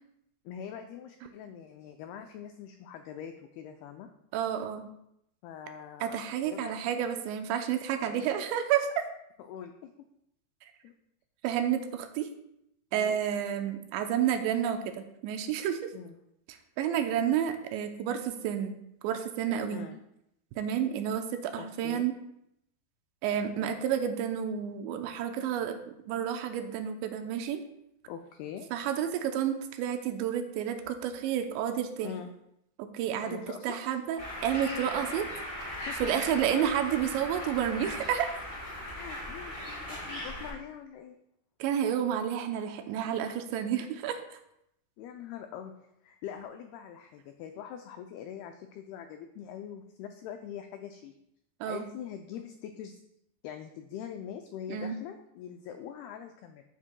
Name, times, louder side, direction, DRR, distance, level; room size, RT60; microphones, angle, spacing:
voice 1, 0.5-4.1 5.4-6.2 6.4-6.8 8.0-8.3 9.4-9.9 10.8-10.9 12.9-13.2 15.9-16.2 19.7-20.0 21.6-22.1 28.1-28.7 32.0-32.3 33.2-33.8 35.7-36.0 36.3-36.7 38.9-41.2 45.0-45.7 46.0-51.1 51.7-53.0 53.4-56.6, left 9 dB, 90° left, 6 dB, 2.2 m, -43 dB
voice 2, 4.3-4.9 6.0-9.1 11.4-12.3 12.9-15.9 16.5-18.8 19.0-19.9 20.6-22.2 23.2-25.8 26.1-27.6 28.7-32.1 32.9-33.4 33.6-35.3 36.0-38.3 41.6-44.4 51.6-51.9 54.7-55.0, right 9 dB, 85° right, 6 dB, 2.9 m, -30 dB
Bird, 34.2-40.5, left 1 dB, 15° left, 3.1 m, -38 dB
14.0 x 7.3 x 2.2 m, 0.79 s
omnidirectional pair, 5.1 m